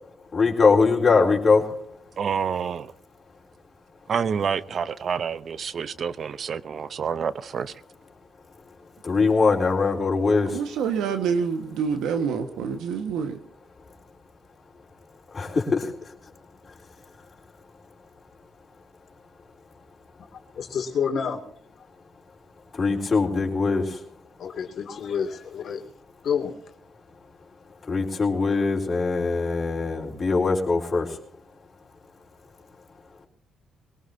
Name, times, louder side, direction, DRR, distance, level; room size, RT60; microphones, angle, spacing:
voice 1, 0.3-1.8 9.0-10.6 15.3-15.9 22.8-24.0 27.9-31.1, left 4 dB, 35° left, 4.2 m, -22 dB
voice 2, 2.2-2.9 4.1-7.8, right 6 dB, 50° right, 0.8 m, -28 dB
voice 3, 10.5-13.4, right 6 dB, 85° right, 1.6 m, -27 dB
voice 4, 20.6-21.4 24.4-25.9 26.2-26.5, left 7 dB, 60° left, 2.6 m, -28 dB
22.0 x 18.5 x 2.8 m
cardioid pair, 90°, 0 cm